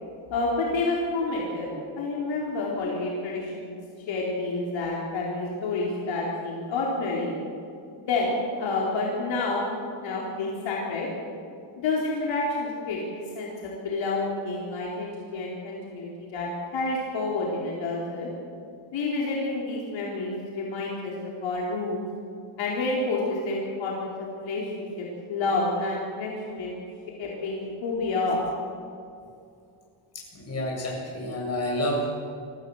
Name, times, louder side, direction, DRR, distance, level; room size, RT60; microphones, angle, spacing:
voice 1, 0.3-1.7 2.0-3.8 4.1-7.3 8.0-9.6 10.0-11.1 11.8-18.3 18.9-22.0 22.6-26.8 27.2-28.5, left 3 dB, 65° left, -4 dB, 4.3 m, -29 dB
voice 2, 30.1-32.1, equal, 30° left, -2 dB, 7.6 m, -29 dB
23.5 x 15.5 x 8.0 m, 2.5 s
cardioid pair, 155°, 49 cm